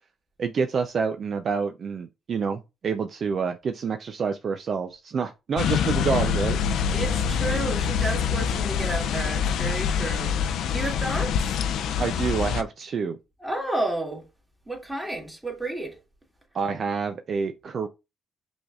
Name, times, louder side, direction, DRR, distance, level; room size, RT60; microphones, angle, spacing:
voice 1, 0.4-6.6 12.0-13.2 16.5-17.9, right 5 dB, 50° right, 0.4 m, -28 dB
sound 1, 5.6-12.6, left 7 dB, 80° left, 0.4 m, -25 dB
voice 2, 6.9-11.6 13.4-14.2 14.7-16.0, right 1 dB, 10° right, 1.9 m, -31 dB
6.0 x 3.4 x 2.3 m
cardioid pair, 90°, 0 cm